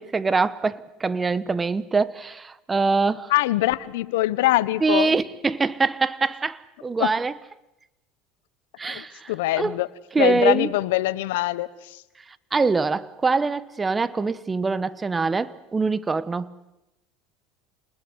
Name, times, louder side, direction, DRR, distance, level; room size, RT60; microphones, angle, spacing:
voice 1, 0.0-3.3 4.8-7.3 8.8-9.8 10.1-10.7 12.5-16.5, right 4 dB, 20° right, 1.2 m, -24 dB
voice 2, 3.3-5.2 7.0-7.2 8.9-9.9 10.2-12.0, left 17 dB, 80° left, 1.2 m, -23 dB
28.5 x 20.5 x 8.1 m
hypercardioid pair, 90°, 0 cm